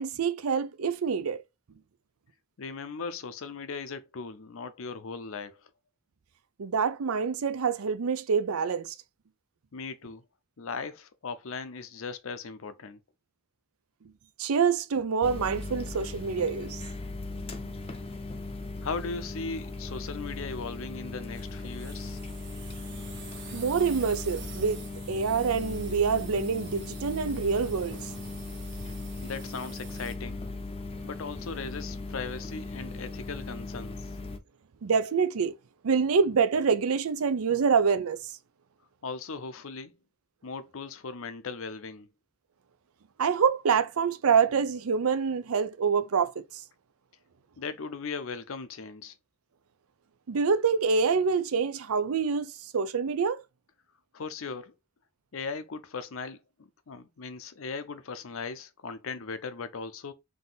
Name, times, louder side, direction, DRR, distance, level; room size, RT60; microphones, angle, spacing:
voice 1, 0.0-1.4 6.6-8.9 14.4-16.8 23.5-28.2 34.8-35.5 35.8-38.2 43.2-46.4 50.3-53.4, right 6 dB, 80° right, 0.5 m, -26 dB
voice 2, 2.6-5.7 9.7-10.2 10.6-13.0 18.8-22.2 29.2-30.4 31.0-34.1 39.0-40.0 40.4-42.1 47.6-49.1 54.1-54.7 55.3-60.1, left 4 dB, 70° left, 0.6 m, -38 dB
sound 1, 15.2-34.4, left 2 dB, 25° left, 0.5 m, -38 dB
sound 2, 21.3-30.1, right 6 dB, 55° right, 1.3 m, -48 dB
3.8 x 2.7 x 3.9 m
head